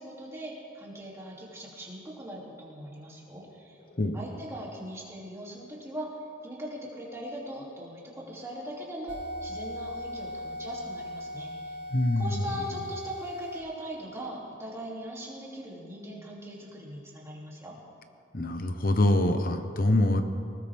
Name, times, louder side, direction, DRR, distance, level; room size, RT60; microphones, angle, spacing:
voice 1, 0.0-3.8 4.1-6.1 6.4-11.8 12.1-17.8, equal, 15° right, -5 dB, 3.0 m, -40 dB
sound 1, 9.1-13.6, left 1 dB, 55° right, 1.4 m, -39 dB
voice 2, 11.9-12.4 18.3-20.2, left 1 dB, 45° left, 7 dB, 1.1 m, -24 dB
20.0 x 19.0 x 3.6 m, 2.5 s
head